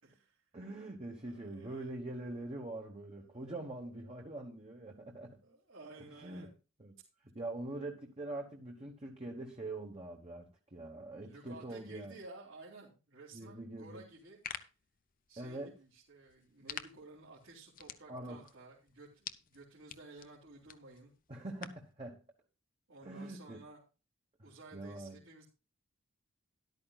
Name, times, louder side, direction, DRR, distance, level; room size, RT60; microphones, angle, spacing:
voice 1, 0.0-0.4 1.2-1.9 3.1-3.5 4.9-5.0 5.4-6.5 11.2-14.4 15.3-21.1 22.9-23.8 24.4-25.4, right 2 dB, 70° right, 3.0 m, -54 dB
voice 2, 0.5-5.4 6.2-6.5 6.8-6.9 7.2-12.1 13.3-14.1 15.4-15.7 18.1-18.4 21.3-22.2 23.0-23.6 24.4-25.2, right 2 dB, 30° right, 1.2 m, -44 dB
sound 1, 14.1-21.9, left 8 dB, 40° left, 0.7 m, -50 dB
13.0 x 11.5 x 2.4 m
head